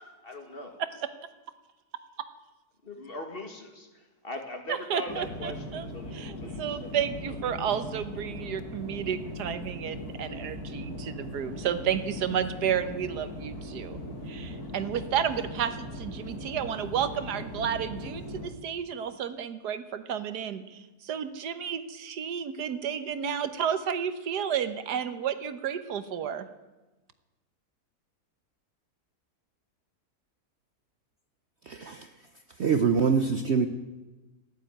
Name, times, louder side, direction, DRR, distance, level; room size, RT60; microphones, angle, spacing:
voice 1, 0.2-0.8 2.8-7.6, left 1 dB, 35° left, 4 dB, 2.1 m, -41 dB
voice 2, 4.9-5.8 6.2-6.3 6.6-14.0 14.3-26.5, right 8 dB, 85° right, 11 dB, 1.6 m, -31 dB
sound 1, 5.1-18.5, left 1 dB, 65° left, 2.5 m, -39 dB
voice 3, 31.7-32.1 32.6-33.7, right 5 dB, 55° right, 8 dB, 0.9 m, -24 dB
14.5 x 11.0 x 9.0 m, 1.1 s
omnidirectional pair, 1.7 m